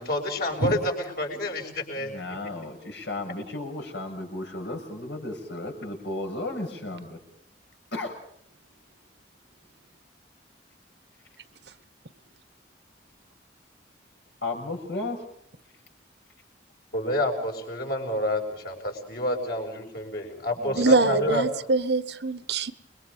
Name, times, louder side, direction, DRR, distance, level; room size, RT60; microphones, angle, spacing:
voice 1, 0.0-2.2 2.4-2.5 16.9-21.5, left 1 dB, 55° left, 2 dB, 7.1 m, -29 dB
voice 2, 2.0-7.2 7.9-8.1 14.4-15.2 20.6-21.3, left 2 dB, 75° left, 3 dB, 7.1 m, -34 dB
voice 3, 20.8-22.7, right 3 dB, 65° right, 13 dB, 1.3 m, -23 dB
29.0 x 23.0 x 5.2 m, 0.67 s
head